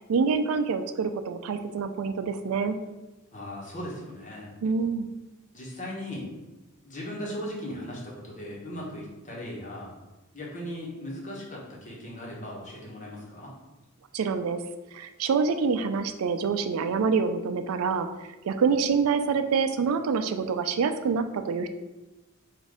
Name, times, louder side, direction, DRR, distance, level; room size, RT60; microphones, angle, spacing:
voice 1, 0.1-2.8 4.6-5.1 14.1-14.6 14.9-18.1 18.4-21.7, right 5 dB, 85° right, 9 dB, 0.4 m, -26 dB
voice 2, 3.3-4.5 5.5-6.3 6.8-9.9 10.3-13.5, left 1 dB, 35° left, -4 dB, 1.2 m, -38 dB
4.1 x 2.6 x 4.8 m, 1.1 s
head